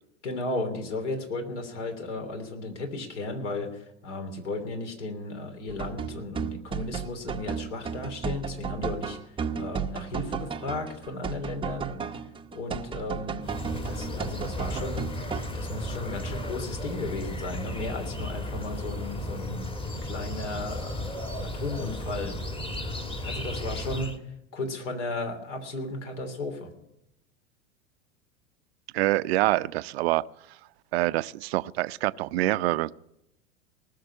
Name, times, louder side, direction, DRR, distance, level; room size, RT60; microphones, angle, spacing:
voice 1, 0.2-9.2 9.5-12.1 12.5-13.5 13.8-15.1 15.5-19.7 20.0-22.4 23.2-24.1 24.5-26.7, left 2 dB, 65° left, 3.2 m, -35 dB
sound 1, 5.7-15.4, right 6 dB, 15° right, 0.7 m, -34 dB
sound 2, 13.4-24.2, left 1 dB, 15° left, 1.5 m, -34 dB
voice 2, 28.9-30.2 30.9-32.9, right 18 dB, 55° right, 0.6 m, -25 dB
19.0 x 6.7 x 9.9 m
figure-of-eight pair, 90°, 38 cm